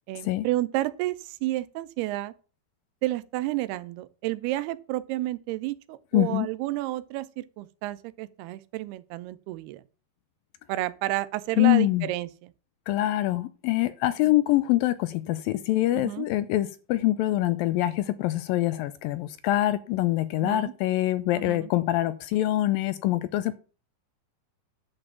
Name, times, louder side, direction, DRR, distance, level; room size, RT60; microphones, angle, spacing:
voice 1, 0.1-2.3 3.0-9.8 10.7-12.3 15.9-16.3 20.4-20.7 21.3-21.6, right 16 dB, 90° right, 2.7 m, -31 dB
voice 2, 6.1-6.5 11.6-12.1 12.9-23.6, left 15 dB, 80° left, 2.1 m, -24 dB
11.0 x 5.2 x 7.1 m
omnidirectional pair, 4.5 m